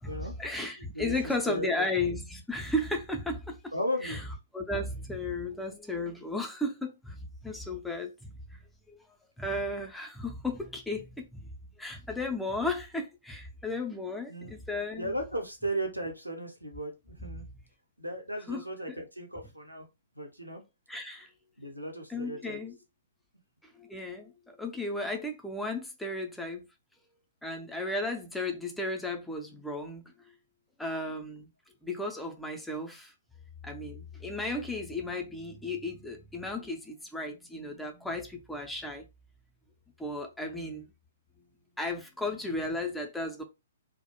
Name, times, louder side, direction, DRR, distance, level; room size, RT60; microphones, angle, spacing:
voice 1, 0.0-3.7 4.0-4.2 4.5-9.0 9.4-11.5 11.8-15.1 17.2-17.3 18.5-19.0 20.9-21.3 22.1-22.8 23.8-26.7 27.4-30.1 30.8-31.5 31.8-33.1 33.6-39.1 40.0-40.9 41.8-43.4, left 2 dB, 5° left, 0.4 m, -34 dB
voice 2, 1.5-1.8 3.7-4.2 14.3-14.5 14.9-17.4 18.0-19.9 20.2-20.6 21.6-22.6 40.4-40.8, equal, 90° right, 0.7 m, -36 dB
2.3 x 2.0 x 2.8 m
figure-of-eight pair, 120°, 0 cm